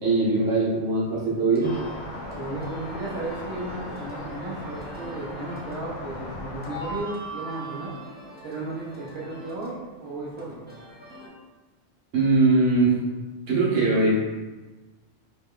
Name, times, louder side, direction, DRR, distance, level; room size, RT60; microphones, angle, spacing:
voice 1, 0.0-1.8 12.1-12.9 13.5-14.2, right 3 dB, 85° right, -6 dB, 1.3 m, -21 dB
sound 1, 0.9-11.3, right 2 dB, 10° right, 0.7 m, -42 dB
sound 2, 1.6-7.0, left 1 dB, 75° left, 1.0 m, -38 dB
voice 2, 2.3-7.9 8.4-10.6, right 2 dB, 55° right, -6 dB, 1.1 m, -34 dB
4.0 x 2.2 x 3.7 m, 1.2 s
omnidirectional pair, 1.3 m